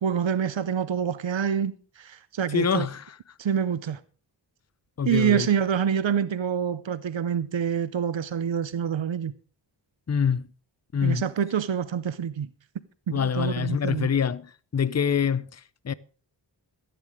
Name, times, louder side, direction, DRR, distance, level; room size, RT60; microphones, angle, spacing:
voice 1, 0.0-2.9 3.4-4.0 5.1-9.3 11.0-12.5 13.1-14.1, right 8 dB, 85° right, 0.7 m, -26 dB
voice 2, 2.5-3.0 5.0-5.5 10.1-10.5 10.9-11.3 13.1-15.9, left 7 dB, 35° left, 0.6 m, -25 dB
13.5 x 10.0 x 5.0 m
wide cardioid pair, 60°, 45 cm